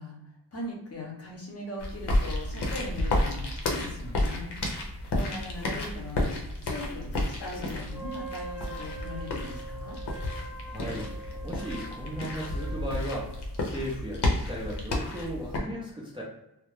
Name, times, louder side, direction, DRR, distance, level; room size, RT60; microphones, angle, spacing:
voice 1, 0.0-4.5 4.8-6.4 6.6-10.0, left 1 dB, 40° left, -1 dB, 0.6 m, -39 dB
sound 1, 1.8-15.6, left 1 dB, 85° left, 0.6 m, -31 dB
Wind instrument woodwind instrument, 7.9-13.5, right 3 dB, 5° left, 0.7 m, -43 dB
voice 2, 10.6-11.1 11.4-16.2, equal, 15° right, -5 dB, 0.4 m, -36 dB
2.2 x 2.0 x 2.9 m, 0.88 s
wide cardioid pair, 150°, 40 cm